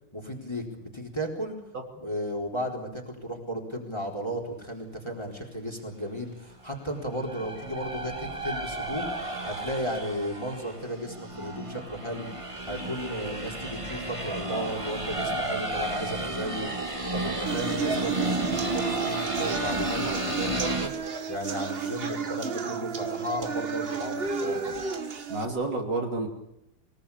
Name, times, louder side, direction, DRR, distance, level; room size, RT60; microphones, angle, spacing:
voice 1, 0.1-1.6 2.0-12.3 12.6-24.7, equal, 10° left, 0 dB, 4.2 m, -34 dB
sound 1, 6.8-20.9, right 2 dB, 15° right, 2.1 m, -32 dB
sound 2, 17.5-25.4, right 5 dB, 35° right, 1.2 m, -32 dB
voice 2, 25.3-26.3, right 2 dB, 60° right, 1 dB, 3.7 m, -30 dB
23.5 x 20.0 x 8.6 m, 0.85 s
omnidirectional pair, 2.2 m